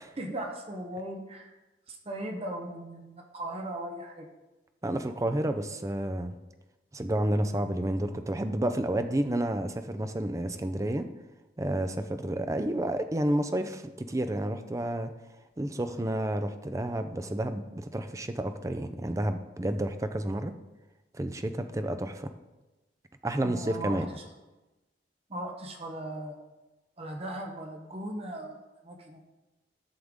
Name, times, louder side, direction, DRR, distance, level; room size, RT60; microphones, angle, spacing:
voice 1, 0.2-1.5 1.9-4.3 23.4-24.2 25.3-26.4 27.0-29.2, right 1 dB, 35° right, 3 dB, 0.9 m, -38 dB
voice 2, 4.8-6.3 6.9-11.0 11.6-15.1 15.6-20.5 21.1-22.3 23.2-24.1, right 1 dB, 20° right, 9 dB, 0.5 m, -30 dB
11.5 x 6.6 x 3.7 m, 1.1 s
head